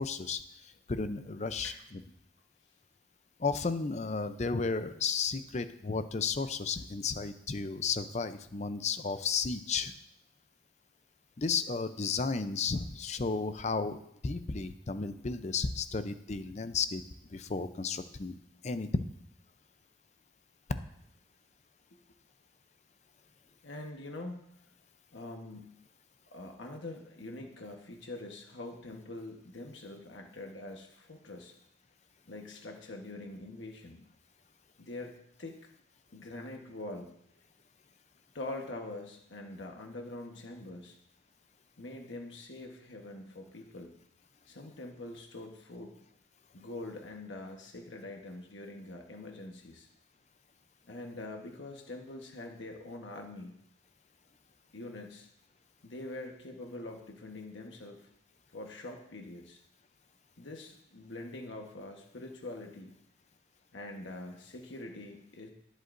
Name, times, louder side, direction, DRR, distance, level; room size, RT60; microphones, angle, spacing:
voice 1, 0.0-2.0 3.4-10.0 11.4-17.0 17.3-18.4 18.6-19.1, left 4 dB, 40° left, 11 dB, 0.5 m, -33 dB
voice 2, 23.6-24.5 25.1-25.8 26.3-31.5 32.3-34.0 34.8-35.1 35.4-35.6 36.1-37.1 38.3-41.0 41.8-43.9 44.5-45.9 46.5-49.9 50.9-53.6 54.7-55.3 55.8-58.1 58.5-59.6 60.4-62.9 63.7-65.5, left 2 dB, 90° left, 2 dB, 1.2 m, -44 dB
19.0 x 8.1 x 2.6 m, 0.75 s
head